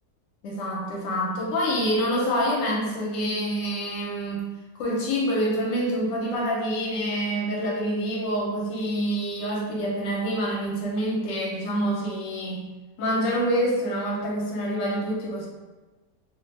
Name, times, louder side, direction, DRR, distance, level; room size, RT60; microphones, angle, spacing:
voice 1, 0.4-4.5 4.7-12.7 13.0-15.5, equal, 80° left, -2 dB, 1.2 m, -26 dB
2.8 x 2.1 x 3.1 m, 1.2 s
omnidirectional pair, 1.9 m